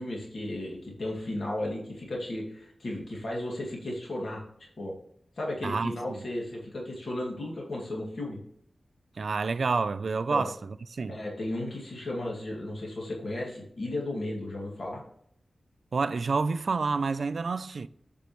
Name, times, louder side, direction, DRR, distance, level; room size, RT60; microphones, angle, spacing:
voice 1, 0.0-4.9 5.4-8.4 10.3-10.5 11.1-15.0, left 1 dB, 65° left, 2.2 m, -34 dB
voice 2, 5.6-6.2 9.2-11.2 15.9-17.9, right 4 dB, 70° right, 0.3 m, -29 dB
8.2 x 5.2 x 3.0 m
wide cardioid pair, 75°, 0 cm